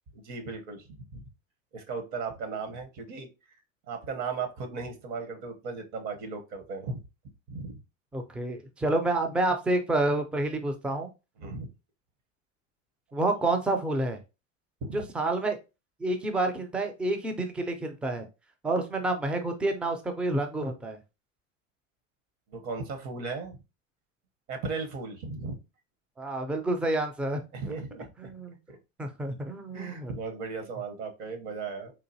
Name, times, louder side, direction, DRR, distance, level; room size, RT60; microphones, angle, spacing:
voice 1, 0.1-1.2 1.7-3.3 3.9-7.0 7.5-7.8 11.4-11.7 14.8-15.0 22.5-23.6 24.5-25.6 27.5-28.3 28.7-28.8 29.7-31.9, right 4 dB, 50° right, 6 dB, 1.0 m, -36 dB
voice 2, 8.1-11.1 13.1-14.2 14.9-15.6 16.0-18.3 18.6-21.0 26.2-27.4 28.2-28.6 29.0-30.1, right 2 dB, 5° right, 5 dB, 0.4 m, -29 dB
3.9 x 2.6 x 2.7 m, 0.28 s
hypercardioid pair, 100°, 38 cm